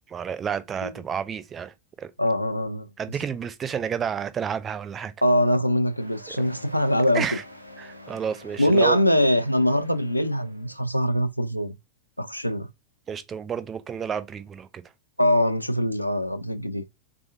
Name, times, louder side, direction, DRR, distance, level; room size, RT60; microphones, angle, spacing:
voice 1, 0.1-2.1 3.0-5.1 6.4-6.5 7.1-7.4 7.8-9.0 13.1-14.8, right 7 dB, 25° right, 0.4 m, -30 dB
voice 2, 2.2-2.9 5.2-7.3 8.6-11.7 12.2-12.7 15.2-16.8, equal, 90° left, 0.4 m, -23 dB
sound 1, 5.9-11.0, left 1 dB, 90° right, 0.6 m, -46 dB
3.5 x 3.4 x 2.5 m
figure-of-eight pair, 90°, 0 cm